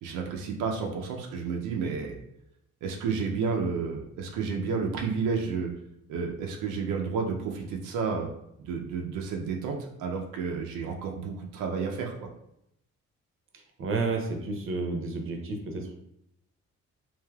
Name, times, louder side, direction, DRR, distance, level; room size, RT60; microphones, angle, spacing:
voice 1, 0.0-2.2 2.8-5.7 6.1-8.3 8.6-12.3, right 5 dB, 85° right, 1 dB, 0.5 m, -31 dB
voice 2, 13.8-15.9, right 3 dB, 45° right, 3 dB, 0.6 m, -31 dB
3.2 x 2.7 x 2.2 m, 0.78 s
cardioid pair, 90°, 30 cm